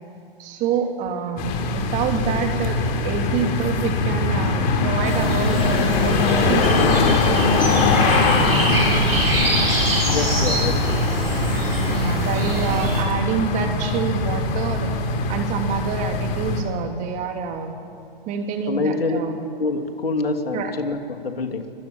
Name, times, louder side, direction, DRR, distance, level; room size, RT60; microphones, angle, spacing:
voice 1, 0.4-6.2 6.5-8.5 11.9-14.9 15.3-17.7 18.3-19.3 20.5-20.7, right 6 dB, 25° right, 4 dB, 2.9 m, -27 dB
sound 1, 1.4-16.6, left 4 dB, 30° left, 3.8 m, -22 dB
sound 2, 5.0-13.0, right 2 dB, 90° right, 7.7 m, -24 dB
voice 2, 10.0-11.1 18.7-19.2 19.6-21.7, left 3 dB, 80° left, 5 dB, 3.0 m, -26 dB
25.0 x 22.5 x 9.1 m, 2.5 s
hypercardioid pair, 130°, 29 cm